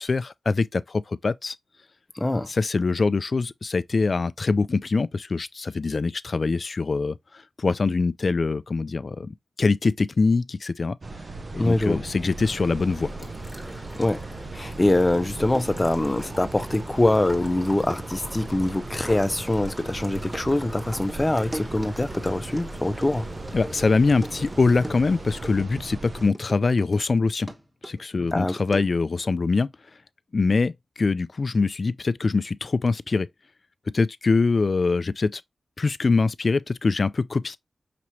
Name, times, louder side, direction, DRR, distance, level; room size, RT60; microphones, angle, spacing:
voice 1, 0.0-1.6 2.5-11.0 11.5-13.3 23.5-27.5 27.8-29.7 30.3-30.7 31.0-33.3 33.9-35.4 35.8-37.6, left 4 dB, 55° left, 0.3 m, -23 dB
voice 2, 2.1-2.5 11.6-12.0 14.0-14.2 14.5-23.3 28.2-28.6, left 1 dB, 25° left, 0.7 m, -24 dB
sound 1, 11.0-26.3, right 2 dB, 55° right, 0.6 m, -37 dB
sound 2, 12.4-25.6, equal, 5° right, 1.5 m, -43 dB
sound 3, 14.9-27.1 27.5-29.1, right 1 dB, 25° right, 1.5 m, -41 dB
5.9 x 3.0 x 2.7 m
cardioid pair, 55°, 0 cm